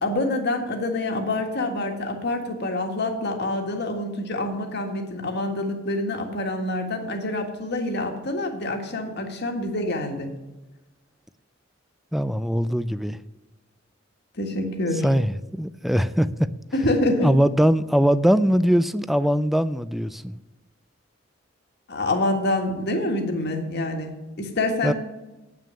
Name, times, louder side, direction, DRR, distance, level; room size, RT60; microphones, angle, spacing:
voice 1, 0.0-10.4 14.4-15.1 16.7-17.4 21.9-24.9, left 2 dB, 55° left, 1.7 m, -26 dB
voice 2, 12.1-13.2 15.0-16.3 17.2-20.4 24.8-24.9, equal, ahead, 0.3 m, -21 dB
8.9 x 6.1 x 8.2 m
head